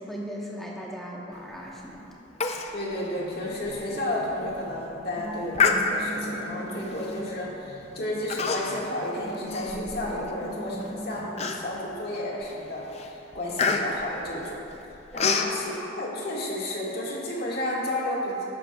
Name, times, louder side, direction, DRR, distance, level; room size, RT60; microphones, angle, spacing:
voice 1, 0.0-2.0 15.1-15.3, equal, ahead, -4 dB, 1.1 m, -37 dB
Human voice, 2.4-2.7 3.0-3.1 3.7-3.8 4.3-4.6 5.5-6.3 7.0-7.3 8.3-8.9 9.3-10.3 10.8-10.9 11.4-11.9 12.4-12.7 12.9-15.5, left 5 dB, 35° left, 0.5 m, -27 dB
voice 2, 2.7-14.6 15.1-18.4, left 1 dB, 50° left, -5 dB, 1.8 m, -32 dB
sound 1, 3.2-11.7, equal, 75° left, 1.6 m, -41 dB
13.0 x 10.5 x 2.4 m, 2.9 s
head